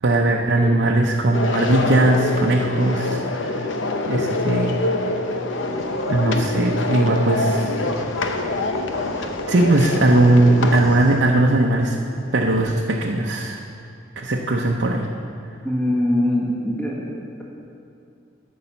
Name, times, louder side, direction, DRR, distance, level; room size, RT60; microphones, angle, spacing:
voice 1, 0.0-3.7 4.1-4.8 6.1-7.8 9.5-12.0 12.3-13.6 14.2-15.1, right 2 dB, 65° right, 0 dB, 0.7 m, -19 dB
sound 1, 1.3-10.8, left 2 dB, 80° left, 0.8 m, -25 dB
sound 2, 5.5-12.6, equal, 45° left, 3.0 m, -40 dB
voice 2, 15.6-17.0, left 1 dB, 10° left, -4 dB, 1.5 m, -22 dB
13.0 x 5.6 x 7.0 m, 2.5 s
head